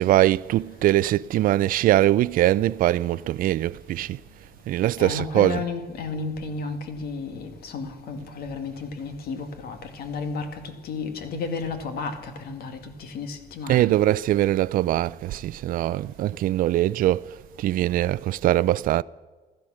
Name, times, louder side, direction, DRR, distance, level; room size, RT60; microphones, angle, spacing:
voice 1, 0.0-4.2 4.7-5.6 13.7-17.3 17.6-19.0, right 14 dB, 55° right, 0.4 m, -22 dB
voice 2, 5.0-13.9, left 4 dB, 65° left, 2.1 m, -33 dB
15.5 x 12.0 x 6.4 m
cardioid pair, 110°, 17 cm